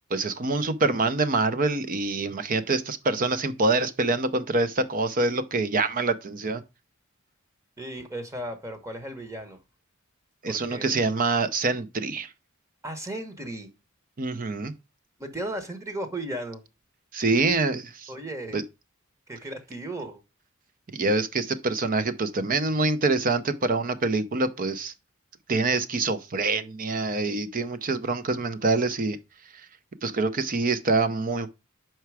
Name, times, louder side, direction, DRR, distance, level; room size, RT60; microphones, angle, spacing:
voice 1, 0.1-6.6 10.4-12.3 14.2-14.7 17.1-18.1 18.5-18.6 20.9-24.9 25.5-29.2 30.0-31.5, right 3 dB, 40° right, 0.6 m, -25 dB
voice 2, 7.8-9.6 10.5-11.0 12.8-13.7 15.2-16.6 18.1-18.6 19.3-20.2, right 1 dB, 15° right, 1.0 m, -35 dB
5.8 x 4.6 x 4.7 m
head